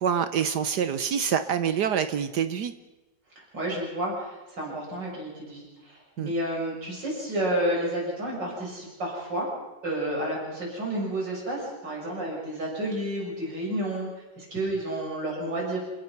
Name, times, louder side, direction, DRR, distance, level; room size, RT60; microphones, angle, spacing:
voice 1, 0.0-2.7 6.2-6.3, right 8 dB, 70° right, 11 dB, 1.5 m, -26 dB
voice 2, 3.4-9.5 9.8-14.1 14.4-15.8, right 1 dB, 85° right, -3 dB, 7.0 m, -30 dB
28.5 x 16.5 x 6.0 m, 1.1 s
omnidirectional pair, 1.9 m